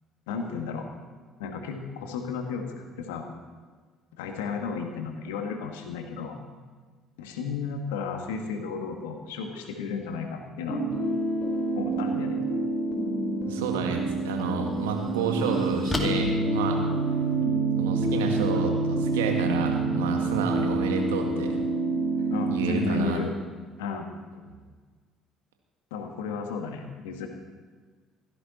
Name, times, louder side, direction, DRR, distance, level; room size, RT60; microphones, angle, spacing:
voice 1, 0.3-0.9 1.4-3.3 4.2-6.5 7.2-10.8 11.7-12.4 18.1-18.4 22.3-23.3 23.8-24.1 25.9-27.3, left 5 dB, 75° left, 4 dB, 1.8 m, -33 dB
sound 1, 10.7-23.0, right 2 dB, 45° left, 4.3 m, -27 dB
voice 2, 13.5-16.8 17.8-21.6 22.5-23.2, right 6 dB, 80° right, 3 dB, 1.9 m, -30 dB
sound 2, 13.7-13.8 14.4-17.4, left 1 dB, 15° left, 2.4 m, -37 dB
16.5 x 13.0 x 4.3 m, 1.5 s
hypercardioid pair, 55°, 0 cm